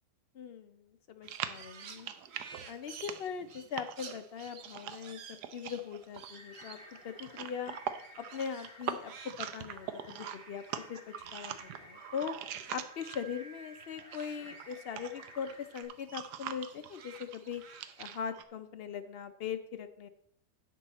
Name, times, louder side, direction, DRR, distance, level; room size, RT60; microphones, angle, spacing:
voice 1, 0.3-2.1 2.7-6.8 7.0-7.7 8.2-9.1 9.4-10.6 10.9-12.3 12.7-17.6 18.0-20.1, left 7 dB, 65° left, 8 dB, 0.6 m, -40 dB
Crow, 1.2-11.9 12.2-15.2 15.5-18.2, right 6 dB, 50° right, 0.8 m, -54 dB
sound 1, 1.2-13.4 13.8-18.4, right 9 dB, 80° right, 1.2 m, -43 dB
sound 2, 6.2-15.8, equal, 35° left, 2.5 m, -54 dB
10.0 x 7.3 x 4.0 m, 0.69 s
omnidirectional pair, 1.8 m